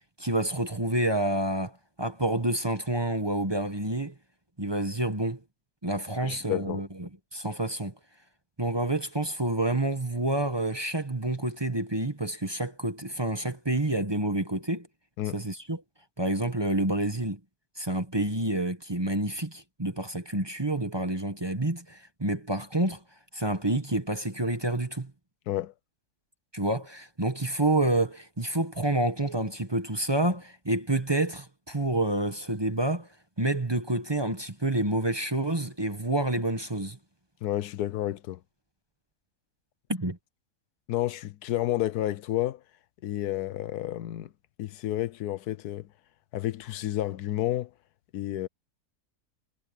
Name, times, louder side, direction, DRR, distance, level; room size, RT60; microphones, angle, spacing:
voice 1, 0.2-4.2 4.6-5.4 5.8-7.9 8.6-14.9 15.3-15.8 16.2-17.4 17.8-23.0 23.3-25.1 26.5-33.1 33.4-37.0 39.9-40.2, right 1 dB, 20° right, 1.2 m, -28 dB
voice 2, 6.2-6.8 15.2-15.4 25.5-25.7 37.4-38.4 40.9-42.6 43.0-44.3 44.6-45.9 46.3-47.7 48.1-48.5, left 14 dB, 80° left, 1.2 m, -30 dB
omnidirectional pair, 1.6 m